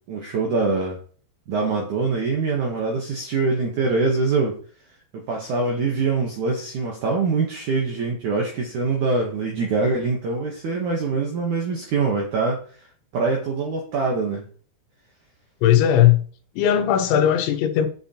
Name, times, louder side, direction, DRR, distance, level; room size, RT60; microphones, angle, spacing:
voice 1, 0.1-1.0 1.5-4.6 5.1-12.6 13.1-14.4, right 4 dB, 70° right, 1.8 m, -24 dB
voice 2, 15.6-16.2 16.6-17.9, left 10 dB, 90° left, 3.3 m, -17 dB
7.8 x 7.8 x 2.9 m
omnidirectional pair, 5.1 m